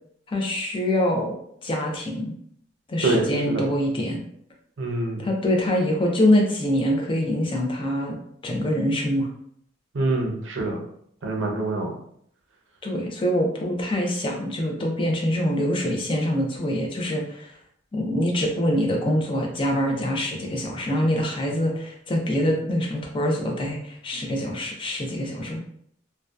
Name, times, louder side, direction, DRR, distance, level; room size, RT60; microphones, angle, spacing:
voice 1, 0.3-1.4 1.6-2.3 2.9-4.2 5.2-8.2 8.4-9.3 12.8-17.5 17.9-25.6, equal, 25° left, 1 dB, 0.4 m, -24 dB
voice 2, 3.0-3.7 4.8-5.3 9.9-10.8 11.2-12.0, right 2 dB, 80° right, 1 dB, 0.6 m, -25 dB
2.6 x 2.1 x 2.2 m, 0.67 s
head